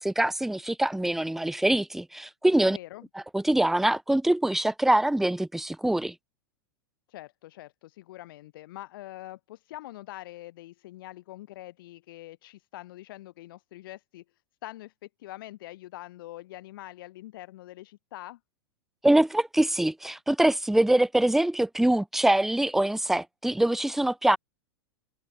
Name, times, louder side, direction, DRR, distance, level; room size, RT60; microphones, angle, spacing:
voice 1, 0.0-2.8 3.3-6.1 19.0-24.4, right 1 dB, ahead, 0.6 m, -24 dB
voice 2, 2.7-3.1 7.1-14.2 14.6-18.4, left 16 dB, 60° left, 6.4 m, -44 dB
figure-of-eight pair, 95°, 13 cm